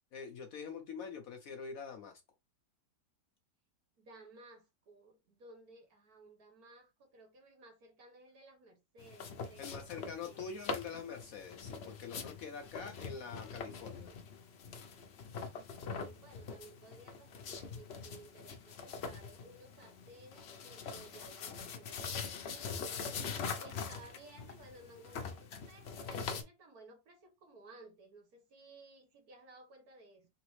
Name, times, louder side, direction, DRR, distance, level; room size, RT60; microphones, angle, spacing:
voice 1, 0.1-2.2 9.6-14.1, left 6 dB, 65° left, 0.9 m, -45 dB
voice 2, 4.0-10.5 15.9-23.0 23.6-30.3, right 2 dB, 60° right, 1.5 m, -57 dB
sound 1, 9.0-26.4, left 5 dB, 90° left, 0.5 m, -43 dB
4.0 x 3.4 x 3.1 m
omnidirectional pair, 1.9 m